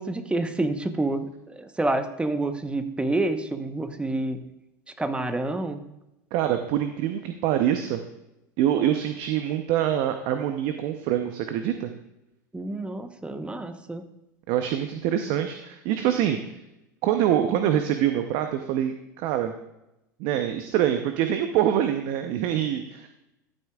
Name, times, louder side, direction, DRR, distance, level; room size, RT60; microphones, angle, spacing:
voice 1, 0.0-4.4 5.0-5.8 12.5-14.0, right 2 dB, 10° right, 9 dB, 0.9 m, -28 dB
voice 2, 6.3-8.0 8.6-11.9 14.5-16.4 17.0-19.5 20.2-23.1, right 10 dB, 60° right, 7 dB, 0.7 m, -25 dB
14.0 x 8.1 x 2.4 m, 0.90 s
hypercardioid pair, 90°, 10 cm